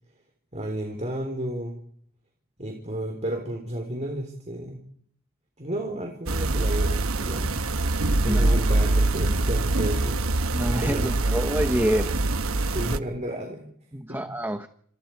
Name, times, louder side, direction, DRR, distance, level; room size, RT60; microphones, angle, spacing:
voice 1, 0.5-1.8 2.6-4.8 5.6-7.6 8.2-10.2 10.8-11.3 12.7-13.7 14.1-14.4, right 1 dB, 30° right, 4 dB, 4.1 m, -32 dB
sound 1, 6.3-13.0, right 2 dB, 65° right, 1.2 m, -24 dB
voice 2, 8.2-8.6 10.5-12.2 13.9-14.7, equal, 10° right, 7 dB, 1.1 m, -27 dB
29.5 x 27.5 x 4.7 m, 0.64 s
head